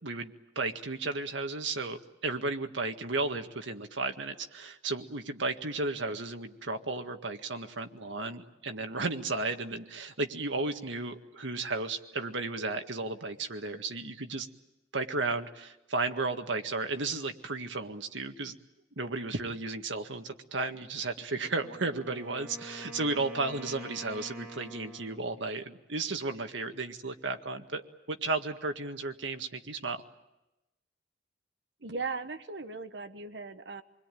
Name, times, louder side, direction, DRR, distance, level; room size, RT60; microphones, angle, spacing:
voice 1, 0.0-14.5 14.9-18.5 19.0-27.8 28.1-30.0, right 3 dB, 90° right, 6 dB, 1.8 m, -34 dB
Wind instrument woodwind instrument, 21.4-25.3, right 1 dB, 10° right, 4.0 m, -46 dB
voice 2, 31.8-33.8, right 4 dB, 70° right, 9 dB, 1.3 m, -38 dB
27.5 x 22.0 x 9.3 m, 0.97 s
head